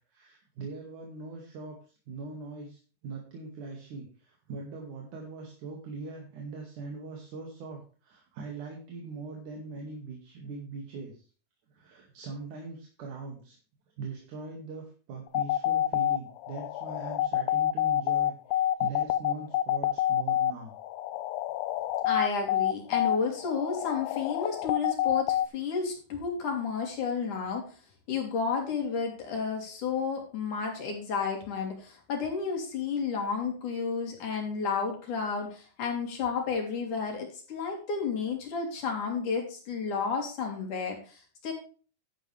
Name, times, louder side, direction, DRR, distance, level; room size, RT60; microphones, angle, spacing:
voice 1, 0.1-1.8 2.1-11.2 11.7-13.6 14.0-20.7, right 4 dB, 70° right, 0 dB, 3.7 m, -41 dB
sound 1, 15.3-25.5, left 12 dB, 85° left, 1.4 m, -27 dB
voice 2, 22.0-27.7 28.1-41.5, left 5 dB, 70° left, 2 dB, 4.8 m, -32 dB
12.0 x 10.0 x 3.4 m, 0.38 s
omnidirectional pair, 3.6 m